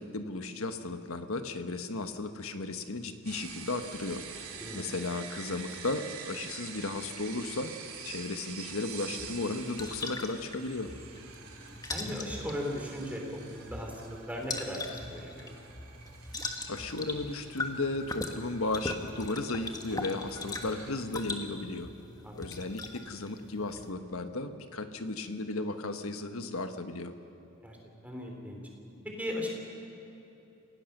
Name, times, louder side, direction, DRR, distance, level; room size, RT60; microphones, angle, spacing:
voice 1, 0.0-4.2 4.7-7.7 8.0-10.9 16.7-21.9 22.4-27.1, left 2 dB, 80° left, 8 dB, 1.3 m, -35 dB
sound 1, 3.2-20.9, right 6 dB, 90° right, 2.7 m, -47 dB
sound 2, 9.1-23.9, left 2 dB, 15° left, 1.4 m, -41 dB
voice 2, 11.4-15.6 22.2-22.3 27.6-27.8 28.0-28.6 29.2-29.5, left 1 dB, 5° right, 0 dB, 3.3 m, -38 dB
Wind instrument woodwind instrument, 17.1-22.1, equal, 45° left, 4.6 m, -58 dB
28.5 x 16.5 x 6.7 m, 3.0 s
head